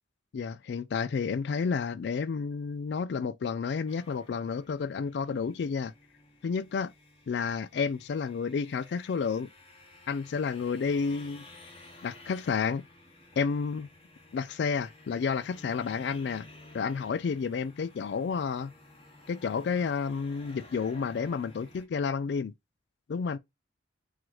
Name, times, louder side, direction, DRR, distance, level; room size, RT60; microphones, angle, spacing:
voice 1, 0.3-5.9 6.4-6.9 7.3-9.5 10.1-11.4 12.0-12.8 13.4-13.9 14.3-16.5 16.7-18.7 19.3-22.5 23.1-23.4, left 5 dB, 60° left, 0.3 m, -30 dB
sound 1, 3.9-21.9, left 2 dB, 30° left, 0.9 m, -54 dB
3.8 x 3.1 x 3.0 m
head